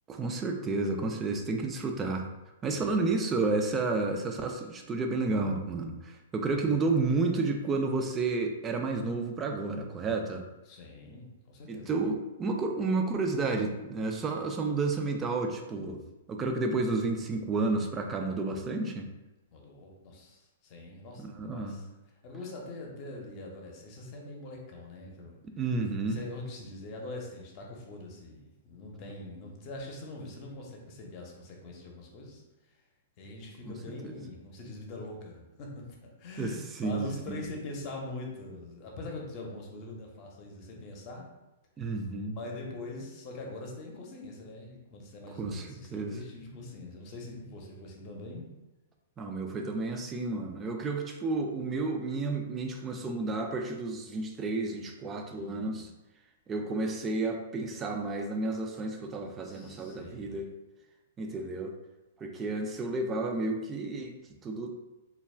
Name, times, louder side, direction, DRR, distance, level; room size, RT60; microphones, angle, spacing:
voice 1, 0.1-2.3 2.6-10.4 11.7-16.0 16.3-19.1 21.2-21.8 25.6-26.2 33.6-33.7 34.0-34.2 36.4-37.4 41.8-42.4 45.4-46.2 49.2-55.9 56.5-60.5 61.2-61.7 62.2-64.2 64.4-64.8, right 3 dB, 20° right, 4 dB, 0.3 m, -31 dB
voice 2, 2.7-3.1 6.6-6.7 10.7-11.9 19.5-21.9 22.2-25.4 26.1-32.4 33.2-41.3 42.3-48.5 55.3-55.9 59.4-60.4, left 2 dB, 40° left, 0 dB, 0.7 m, -43 dB
2.3 x 2.2 x 3.3 m, 1.0 s
hypercardioid pair, 120°, 0 cm